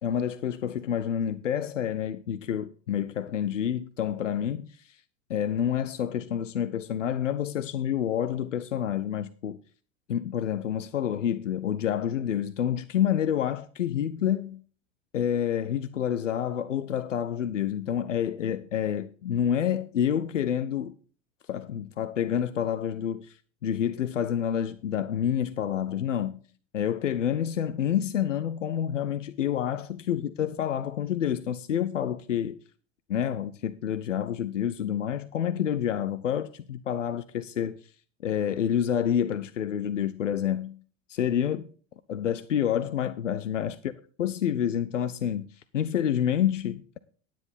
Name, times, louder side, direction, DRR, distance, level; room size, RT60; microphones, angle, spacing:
voice 1, 0.0-5.0 5.3-9.6 10.1-14.6 15.1-20.9 21.5-26.4 26.7-32.6 33.1-37.8 38.2-40.8 41.1-41.7 42.1-43.7 44.2-45.5 45.7-47.0, left 9 dB, 85° left, 0.6 m, -28 dB
10.0 x 9.9 x 3.7 m
figure-of-eight pair, 80°, 36 cm